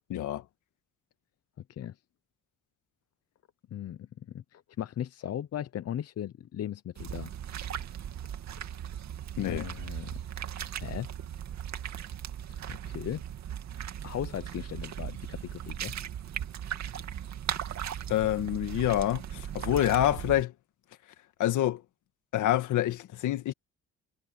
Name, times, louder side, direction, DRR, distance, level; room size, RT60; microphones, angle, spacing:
voice 1, 0.1-0.4 9.4-9.7 18.1-20.5 21.4-21.8 22.3-23.5, left 13 dB, 80° left, 1.9 m, -27 dB
voice 2, 3.7-4.1 4.3-7.3 9.4-10.2 10.7-11.1 12.5-13.2 14.0-15.9, left 10 dB, 55° left, 0.8 m, -37 dB
sound 1, 7.0-20.4, right 9 dB, 65° right, 2.4 m, -38 dB
cardioid pair, 90°, 30 cm